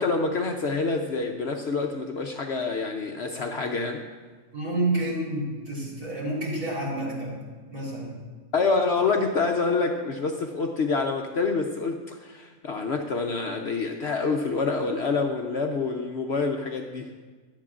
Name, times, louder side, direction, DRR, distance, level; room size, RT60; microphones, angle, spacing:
voice 1, 0.0-4.0 8.5-17.1, left 4 dB, 55° left, 3 dB, 0.8 m, -27 dB
voice 2, 4.5-7.4 7.7-8.2, right 1 dB, 65° right, -6 dB, 4.3 m, -29 dB
16.0 x 11.5 x 2.5 m, 1.4 s
omnidirectional pair, 1.5 m